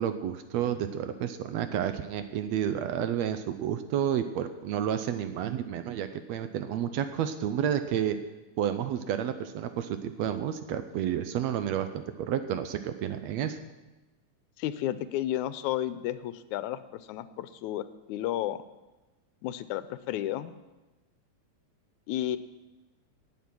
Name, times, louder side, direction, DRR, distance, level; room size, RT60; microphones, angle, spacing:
voice 1, 0.0-8.2 8.6-13.6, right 9 dB, 75° right, 10 dB, 1.7 m, -30 dB
voice 2, 14.6-18.6 19.4-20.5 22.1-22.4, left 12 dB, 80° left, 14 dB, 2.0 m, -32 dB
18.0 x 7.4 x 6.0 m, 1.1 s
omnidirectional pair, 3.4 m